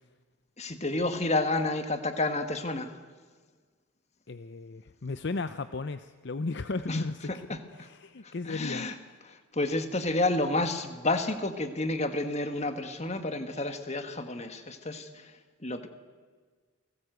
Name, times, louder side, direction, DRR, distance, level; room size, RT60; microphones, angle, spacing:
voice 1, 0.6-2.9 6.9-7.0 7.5-7.9 8.2-8.9 9.3-15.3 15.6-15.9, left 2 dB, 30° left, 8 dB, 1.7 m, -30 dB
voice 2, 4.3-8.9, left 3 dB, 55° left, 11 dB, 0.6 m, -35 dB
29.0 x 19.0 x 8.0 m, 1.5 s
head